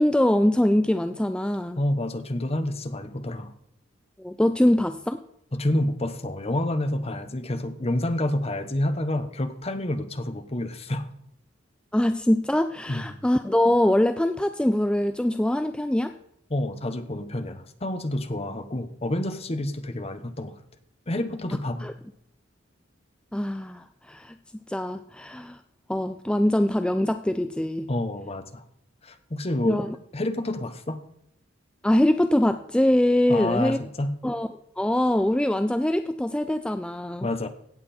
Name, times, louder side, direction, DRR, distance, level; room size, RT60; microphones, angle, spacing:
voice 1, 0.0-1.8 4.2-5.2 11.9-16.1 21.8-21.9 23.3-24.4 24.7-25.6 25.9-27.9 29.7-30.0 31.8-33.8 34.2-34.5 34.8-37.3, left 1 dB, 5° left, 9 dB, 0.3 m, -23 dB
voice 2, 1.8-3.5 5.5-11.1 12.9-13.2 16.5-20.5 21.1-21.9 27.9-28.6 29.0-29.8 30.1-31.0 33.3-34.2 37.2-37.5, left 1 dB, 35° left, 9 dB, 1.0 m, -28 dB
16.5 x 7.6 x 4.3 m, 0.73 s
head